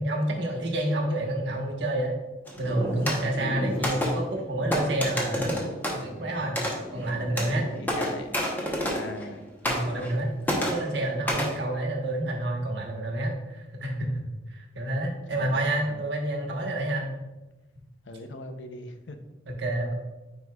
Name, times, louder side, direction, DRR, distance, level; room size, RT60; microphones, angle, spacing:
voice 1, 0.0-2.2 2.6-5.7 5.9-7.7 9.6-14.2 14.5-17.1 19.5-19.9, right 1 dB, 70° right, 1 dB, 1.2 m, -29 dB
sound 1, 2.5-9.3 9.6-10.2 10.4-11.6, equal, 10° left, 0.9 m, -30 dB
voice 2, 7.8-8.4 8.9-9.4 15.3-16.0 18.1-19.2, left 2 dB, 85° left, 8 dB, 0.6 m, -40 dB
9.5 x 4.5 x 2.4 m, 1.1 s
head